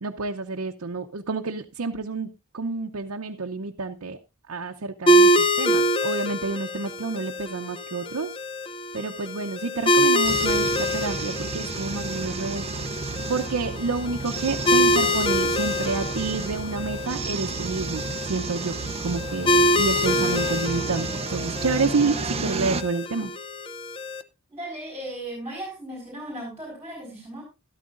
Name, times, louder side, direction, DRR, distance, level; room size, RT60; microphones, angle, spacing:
voice 1, 0.0-2.3 2.5-4.2 4.5-8.3 8.9-12.6 13.3-18.0 18.3-18.8 19.0-23.3, right 3 dB, 75° right, 3 dB, 0.7 m, -29 dB
sound 1, 5.1-24.2, equal, 25° left, 0.6 m, -25 dB
sound 2, 10.2-22.8, right 4 dB, 30° right, 0.6 m, -32 dB
voice 2, 24.5-27.4, right 1 dB, 10° right, -1 dB, 4.3 m, -36 dB
13.0 x 13.0 x 2.5 m, 0.27 s
head